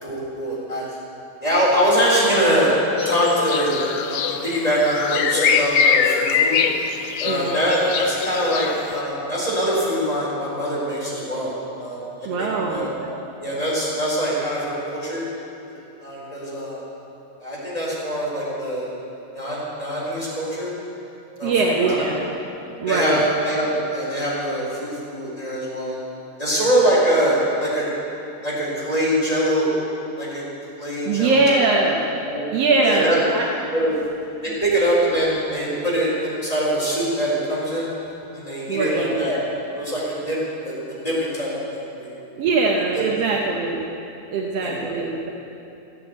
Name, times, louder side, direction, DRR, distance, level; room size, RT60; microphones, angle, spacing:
voice 1, 0.0-0.9 1.4-2.7 3.0-3.8 4.1-6.6 7.2-15.3 16.0-16.8 17.4-18.9 19.3-20.7 21.4-21.5 21.8-22.2 22.8-26.0 26.4-27.9 28.4-29.7 30.2-30.4 30.8-31.4 32.2-32.4 32.8-33.2 33.7-33.9 34.4-37.9 38.3-39.4 39.7-42.1 42.9-43.0 44.6-45.0, equal, 10° left, -7 dB, 3.8 m, -23 dB
sound 1, 3.0-9.0, left 7 dB, 90° left, 1.5 m, -23 dB
voice 2, 12.3-12.9 21.4-22.2 22.8-23.2 31.1-32.0 32.5-33.5 38.7-39.2 42.4-43.9 44.3-45.3, right 3 dB, 70° right, -1 dB, 1.5 m, -21 dB
15.5 x 8.3 x 8.1 m, 2.9 s
omnidirectional pair, 3.9 m